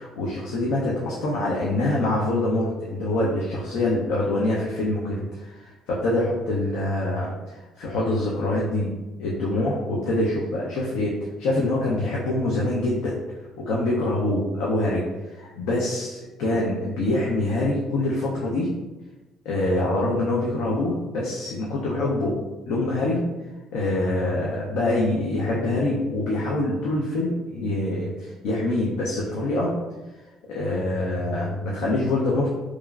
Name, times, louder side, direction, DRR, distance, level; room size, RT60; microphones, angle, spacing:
voice 1, 0.0-8.9 9.2-13.1 13.6-15.0 15.3-18.7 19.4-22.4 22.7-23.2 23.7-29.7 30.5-32.5, left 2 dB, 85° left, -4 dB, 0.5 m, -25 dB
2.9 x 2.3 x 2.3 m, 1.1 s
cardioid pair, 140°, 0 cm